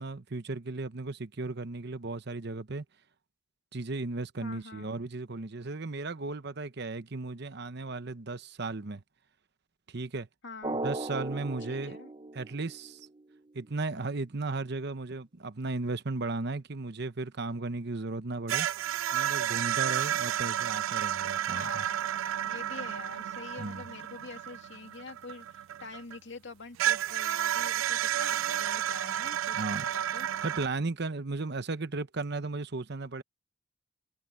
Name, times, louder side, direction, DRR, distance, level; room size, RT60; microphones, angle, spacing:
voice 1, 0.0-2.8 3.7-9.0 9.9-10.3 10.8-12.0 12.4-13.1 13.5-18.7 19.1-21.7 23.6-23.8 29.5-29.8 30.4-33.2, right 3 dB, 55° right, 0.9 m, -35 dB
voice 2, 4.4-4.9 10.4-10.8 11.7-12.1 21.5-22.0 22.4-30.3, left 3 dB, 60° left, 2.4 m, -45 dB
Drum, 10.6-13.2, right 2 dB, 25° right, 0.8 m, -37 dB
sound 1, 18.5-26.2 26.8-30.7, right 11 dB, 80° right, 0.3 m, -31 dB
head